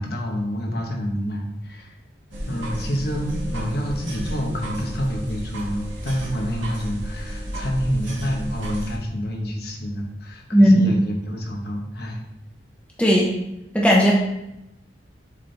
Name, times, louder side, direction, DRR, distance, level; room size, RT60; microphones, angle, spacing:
voice 1, 0.0-1.9 2.5-12.2, equal, 55° left, 0 dB, 1.1 m, -28 dB
sound 1, 2.3-9.0, right 1 dB, 90° right, 1.6 m, -32 dB
voice 2, 10.5-10.9 13.0-13.3 13.7-14.1, equal, 5° left, -3 dB, 0.8 m, -15 dB
7.2 x 4.3 x 3.4 m, 0.86 s
head